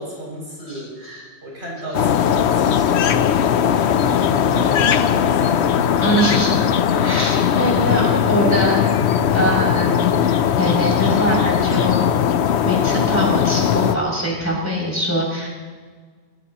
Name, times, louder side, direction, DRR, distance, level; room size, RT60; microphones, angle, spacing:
voice 1, 0.0-5.8, equal, 85° right, -5 dB, 6.7 m, -33 dB
sound 1, 1.9-14.0, left 8 dB, 85° left, 1.0 m, -18 dB
voice 2, 6.0-8.8 9.3-12.0 12.6-15.5, equal, 15° left, -5 dB, 6.2 m, -22 dB
24.5 x 16.5 x 3.0 m, 1.5 s
omnidirectional pair, 1.1 m